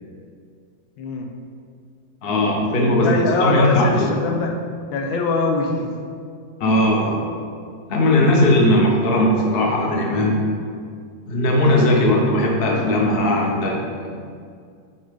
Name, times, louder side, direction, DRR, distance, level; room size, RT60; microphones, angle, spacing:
voice 1, 1.0-1.3 3.0-4.6 4.9-5.9, left 3 dB, 85° left, 2 dB, 1.5 m, -22 dB
voice 2, 2.2-4.4 6.6-7.3 7.9-10.4 11.3-14.2, left 1 dB, 40° left, 0 dB, 0.9 m, -18 dB
8.9 x 3.6 x 5.2 m, 2.2 s
omnidirectional pair, 2.1 m